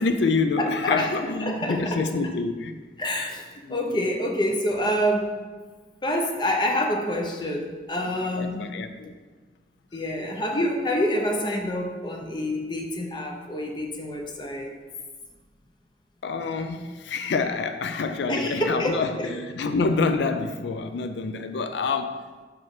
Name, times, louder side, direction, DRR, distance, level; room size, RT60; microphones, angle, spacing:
voice 1, 0.0-2.8 8.3-9.2 16.2-22.3, left 4 dB, 85° left, 8 dB, 0.4 m, -27 dB
voice 2, 0.6-1.1 1.4-2.0 3.0-5.4 6.0-8.6 9.9-14.7 18.3-19.3, equal, 25° left, 1 dB, 0.7 m, -27 dB
6.0 x 4.4 x 4.8 m, 1.4 s
head